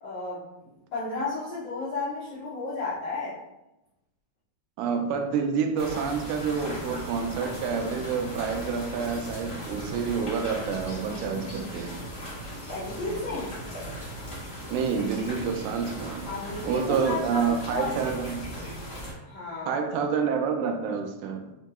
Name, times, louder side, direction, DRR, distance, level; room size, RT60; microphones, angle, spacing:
voice 1, 0.0-3.4 12.7-13.6 16.3-17.9 19.2-19.8, left 3 dB, 80° left, -10 dB, 1.0 m, -33 dB
voice 2, 4.8-12.0 14.7-16.3 16.6-18.5 19.7-21.4, right 6 dB, 90° right, 5 dB, 2.0 m, -28 dB
sound 1, 5.8-19.1, equal, 60° left, 0.7 m, -38 dB
5.2 x 2.7 x 2.3 m, 0.95 s
omnidirectional pair, 3.3 m